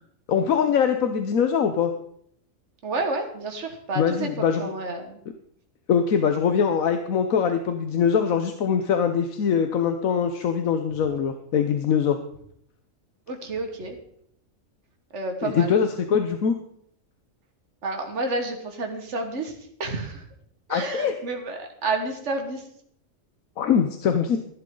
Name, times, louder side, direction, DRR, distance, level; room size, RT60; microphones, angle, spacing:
voice 1, 0.3-1.9 4.0-4.7 5.9-12.2 15.4-16.6 20.7-21.1 23.6-24.4, left 7 dB, 80° left, 7 dB, 1.3 m, -22 dB
voice 2, 2.8-5.2 13.3-14.0 15.1-15.8 17.8-19.5 19.8-20.2 20.7-22.6, right 2 dB, 60° right, 4 dB, 1.9 m, -30 dB
15.0 x 11.0 x 3.8 m, 0.69 s
omnidirectional pair, 1.4 m